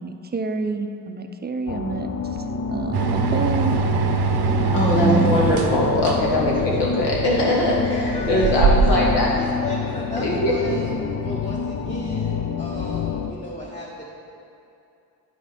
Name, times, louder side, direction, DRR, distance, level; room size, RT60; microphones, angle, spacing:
voice 1, 0.0-2.1 2.7-3.8 4.9-5.3, right 4 dB, 25° right, 7 dB, 0.4 m, -27 dB
sound 1, 1.7-13.3, left 6 dB, 45° left, 0.5 m, -28 dB
sound 2, 2.9-9.2, right 5 dB, 70° right, 0.7 m, -22 dB
voice 2, 4.7-9.3 10.2-10.5, left 1 dB, 85° left, -4 dB, 1.6 m, -21 dB
voice 3, 7.4-8.5 9.2-14.1, left 2 dB, 15° left, -4 dB, 0.9 m, -35 dB
9.1 x 4.8 x 4.1 m, 2.6 s
cardioid pair, 75°, 41 cm